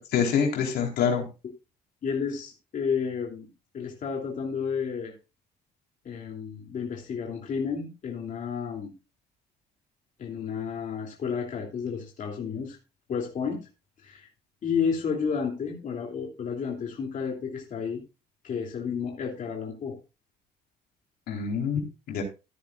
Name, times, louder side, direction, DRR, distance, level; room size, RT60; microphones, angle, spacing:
voice 1, 0.1-1.3 21.3-22.2, left 7 dB, 70° left, 2 dB, 4.1 m, -26 dB
voice 2, 2.0-3.5 3.7-5.2 6.0-8.9 10.2-12.8 13.1-13.6 14.0-14.3 14.6-18.0 18.4-20.0, left 6 dB, 50° left, 0 dB, 3.0 m, -31 dB
14.5 x 10.0 x 2.5 m, 0.29 s
cardioid pair, 110°, 17 cm